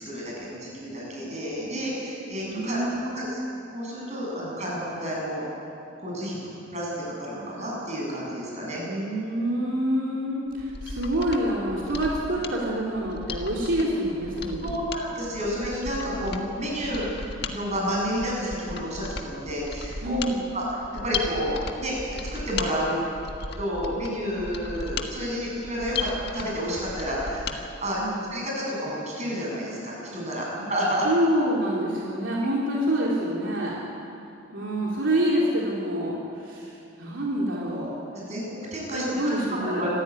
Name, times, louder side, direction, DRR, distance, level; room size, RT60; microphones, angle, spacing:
voice 1, 0.0-2.8 3.1-3.4 3.7-5.4 6.0-6.4 6.7-8.8 14.6-17.1 17.5-20.2 20.5-20.6 20.9-21.9 22.3-22.9 23.6-28.0 28.3-31.1 38.1-39.0 39.5-40.0, equal, 35° right, -3 dB, 8.0 m, -30 dB
voice 2, 2.4-3.4 8.7-14.8 20.0-20.4 28.0-28.2 30.5-30.6 31.0-33.8 34.5-37.9 38.9-39.9, right 1 dB, 70° right, -4 dB, 3.2 m, -27 dB
Mechanisms, 10.5-27.6 27.9-28.0, left 4 dB, 55° left, 1.7 m, -36 dB
25.5 x 15.0 x 9.7 m, 2.7 s
head